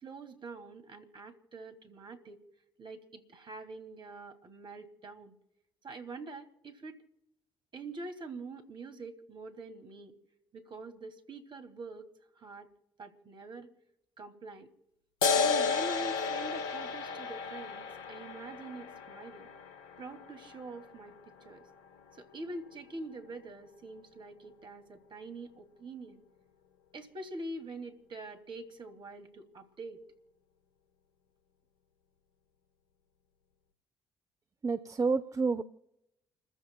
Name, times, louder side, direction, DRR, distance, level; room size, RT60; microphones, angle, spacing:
voice 1, 0.0-2.4 2.8-5.3 5.8-7.0 7.7-10.2 10.5-12.1 12.4-12.7 13.0-13.7 14.2-14.7 15.3-19.5 20.0-21.7 22.1-26.2 26.9-30.0, right 2 dB, 45° right, 6 dB, 2.5 m, -45 dB
sound 1, 15.2-22.2, left 5 dB, 80° left, 1.0 m, -33 dB
voice 2, 34.6-35.6, right 4 dB, 30° right, 11 dB, 0.8 m, -29 dB
29.5 x 15.0 x 2.3 m, 0.88 s
hypercardioid pair, 45°, 12 cm